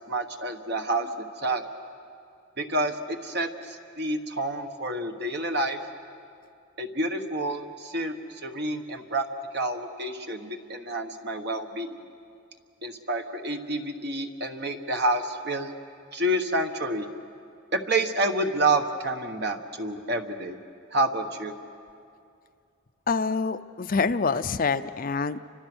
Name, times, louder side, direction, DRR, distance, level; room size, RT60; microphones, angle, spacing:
voice 1, 0.0-1.6 2.6-5.8 6.8-9.3 9.5-12.0 12.8-15.7 16.1-17.1 17.7-20.6 20.9-21.5, right 2 dB, 50° right, 5 dB, 1.5 m, -28 dB
voice 2, 23.1-25.4, left 4 dB, 45° left, 11 dB, 0.5 m, -26 dB
30.0 x 25.5 x 6.3 m, 2.4 s
head